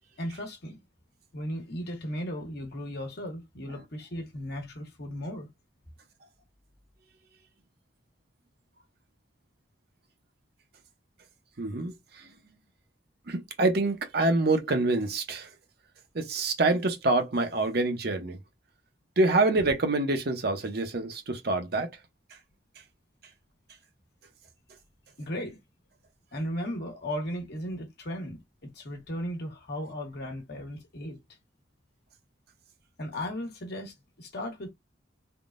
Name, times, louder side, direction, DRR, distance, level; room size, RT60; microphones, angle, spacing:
voice 1, 0.2-0.8 1.3-5.5 25.2-25.6 26.3-31.2 33.0-34.7, equal, 55° left, 1.2 m, -36 dB
voice 2, 11.6-12.2 13.3-15.5 16.1-18.4 19.2-21.9, right 2 dB, 55° right, 0.7 m, -26 dB
3.6 x 2.2 x 2.5 m
head